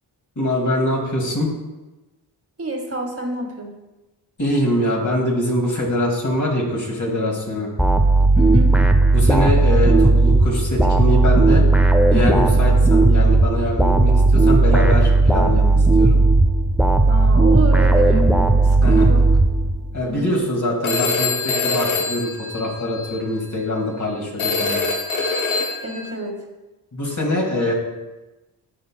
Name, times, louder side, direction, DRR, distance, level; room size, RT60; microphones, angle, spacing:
voice 1, 0.4-1.5 4.4-7.7 9.1-11.7 12.1-16.2 18.8-19.1 19.9-24.8 26.9-27.7, left 1 dB, 40° left, -1 dB, 2.3 m, -23 dB
voice 2, 2.6-3.8 8.3-8.7 17.0-18.3 18.6-19.3 20.0-20.3 25.8-26.4, right 2 dB, 30° right, 1 dB, 1.8 m, -28 dB
sound 1, 7.8-20.0, right 2 dB, 5° right, 0.6 m, -15 dB
Telephone, 20.8-23.2 24.4-26.1, left 4 dB, 75° left, 1.1 m, -24 dB
11.0 x 4.4 x 2.3 m, 1.1 s
supercardioid pair, 50°, 48 cm